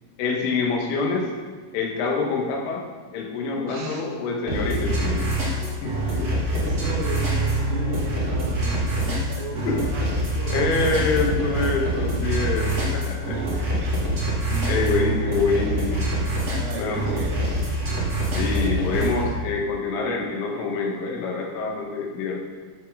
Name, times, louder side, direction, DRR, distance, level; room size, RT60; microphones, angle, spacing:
voice 1, 0.2-1.3 1.7-2.8 3.1-5.3 5.8-6.3 9.7-9.8 10.5-13.8 14.7-16.1 16.8-17.2 18.3-22.4, left 4 dB, 90° left, 0 dB, 3.7 m, -26 dB
voice 2, 3.7-4.0 5.8-10.8 13.2-14.0 14.5-15.3 16.5-17.5, right 2 dB, 85° right, -1 dB, 4.3 m, -35 dB
sound 1, 4.5-19.2, right 1 dB, 65° right, 0.9 m, -25 dB
13.5 x 6.4 x 3.7 m, 1.5 s
omnidirectional pair, 5.6 m